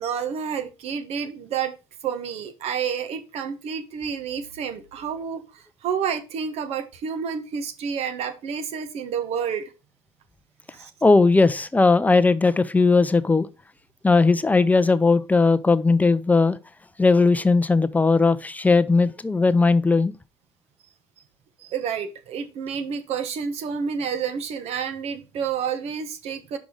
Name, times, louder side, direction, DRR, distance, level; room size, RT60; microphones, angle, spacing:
voice 1, 0.0-1.7 2.0-9.7 10.7-10.9 21.6-26.6, right 7 dB, 65° right, 1.2 m, -29 dB
voice 2, 11.0-13.5 14.0-16.6 17.0-20.1, left 3 dB, 15° left, 0.6 m, -18 dB
5.3 x 4.8 x 5.3 m
supercardioid pair, 70°, 12 cm